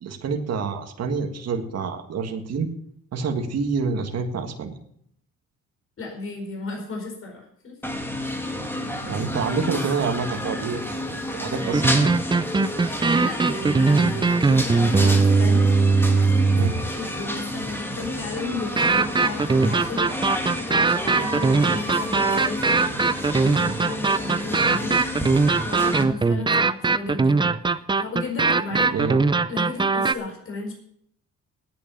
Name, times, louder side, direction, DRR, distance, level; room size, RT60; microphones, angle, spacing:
voice 1, 0.0-2.7 3.1-4.8 9.0-12.1 16.6-16.7 24.6-24.8 28.9-29.2, right 5 dB, 55° right, 3 dB, 1.7 m, -27 dB
voice 2, 6.0-7.7 12.8-25.0 25.6-27.5 28.0-28.9 29.5-30.7, left 3 dB, 45° left, 1 dB, 4.6 m, -34 dB
sound 1, 7.8-26.0, equal, 5° left, 2.0 m, -30 dB
sound 2, 11.6-16.9 18.8-30.1, right 4 dB, 15° right, 0.5 m, -20 dB
9.2 x 8.4 x 8.7 m, 0.68 s
cardioid pair, 90°, 30 cm